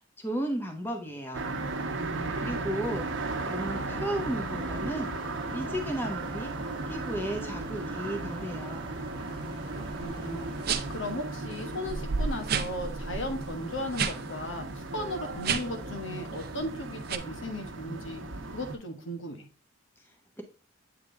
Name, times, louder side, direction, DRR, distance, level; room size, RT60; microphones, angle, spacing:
voice 1, 0.2-1.5 2.4-3.1 3.4-5.1 5.5-6.5 6.9-8.9, right 1 dB, 10° left, 3 dB, 0.9 m, -34 dB
sound 1, 1.3-18.8, right 2 dB, 75° right, 0.9 m, -36 dB
voice 2, 1.9-2.6 9.3-10.5 10.9-18.2 18.5-19.4, left 1 dB, 75° left, 4 dB, 1.4 m, -37 dB
sound 2, 2.8-13.0, right 1 dB, 25° right, 1.0 m, -47 dB
sound 3, 9.9-10.1 10.6-11.0 11.5-11.6 11.9-14.2 14.5-14.7 15.3-15.8 16.3-16.6 17.1-17.2, right 6 dB, 50° right, 0.5 m, -31 dB
8.2 x 3.7 x 3.3 m, 0.37 s
head